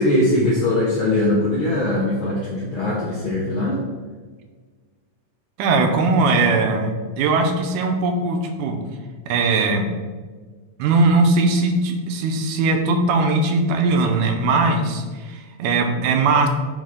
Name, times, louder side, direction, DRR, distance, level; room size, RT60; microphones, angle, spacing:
voice 1, 0.0-3.8, left 1 dB, 75° left, -4 dB, 1.2 m, -21 dB
voice 2, 5.6-8.8 9.3-9.8 10.8-16.5, right 3 dB, 90° right, 5 dB, 2.3 m, -19 dB
6.1 x 5.5 x 3.6 m, 1.4 s
omnidirectional pair, 3.5 m